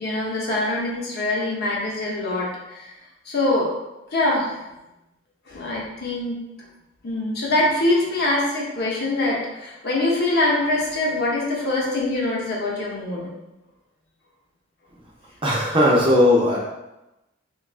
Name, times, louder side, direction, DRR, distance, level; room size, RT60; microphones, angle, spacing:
voice 1, 0.0-2.9 3.3-3.7 4.1-4.6 5.5-6.4 7.0-13.3, left 2 dB, 55° left, -3 dB, 0.7 m, -24 dB
voice 2, 15.4-16.6, left 1 dB, 25° right, -4 dB, 0.5 m, -17 dB
3.3 x 2.3 x 2.3 m, 0.97 s
head